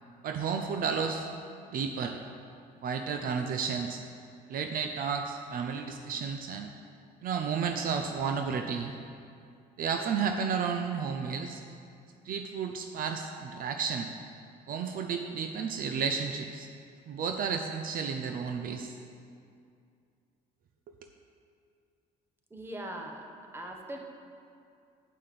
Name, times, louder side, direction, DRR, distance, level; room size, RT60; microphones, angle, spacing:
voice 1, 0.2-1.3 1.7-2.2 2.8-4.0 4.5-6.7 7.2-8.9 9.8-11.6 12.2-14.1 14.7-16.7 17.1-18.9, right 6 dB, 55° right, 5 dB, 0.6 m, -32 dB
voice 2, 22.5-23.3 23.5-24.0, right 1 dB, 15° right, 2 dB, 1.1 m, -40 dB
8.5 x 5.6 x 6.7 m, 2.4 s
cardioid pair, 110°, 17 cm